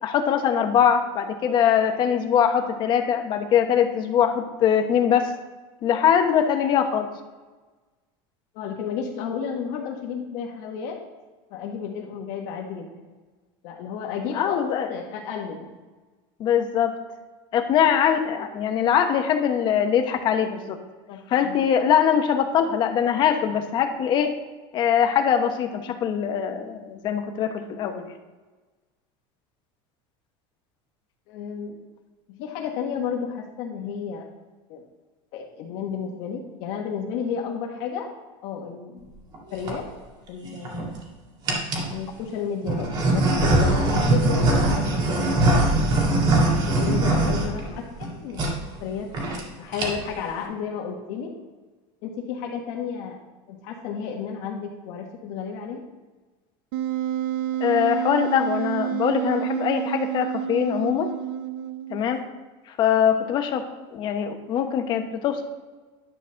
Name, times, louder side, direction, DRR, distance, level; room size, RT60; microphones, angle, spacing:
voice 1, 0.0-5.3 5.8-7.1 14.3-14.9 16.4-16.9 17.5-20.8 21.3-24.3 24.7-28.1 57.6-61.1 61.9-62.2 62.8-63.6 63.9-65.4, left 8 dB, 40° left, 5 dB, 1.1 m, -22 dB
voice 2, 8.5-11.0 11.5-13.1 13.6-14.6 14.9-15.7 21.1-21.6 31.3-31.8 32.3-34.3 34.7-34.8 35.3-38.1 38.4-39.1 39.5-39.9 40.3-40.9 41.9-45.9 46.4-49.1 49.6-51.3 52.0-53.2 53.5-55.8, left 7 dB, 60° left, 1 dB, 1.4 m, -32 dB
sound 1, 39.3-39.7 40.5-41.0 41.5-41.9 42.6-48.1 48.3-48.5 48.8-48.9 49.1-49.4 49.7-50.2, right 2 dB, 35° right, 2.0 m, -22 dB
Wind instrument woodwind instrument, 56.7-62.1, right 11 dB, 70° right, 0.6 m, -29 dB
11.0 x 4.2 x 6.4 m, 1.3 s
cardioid pair, 160°, 12 cm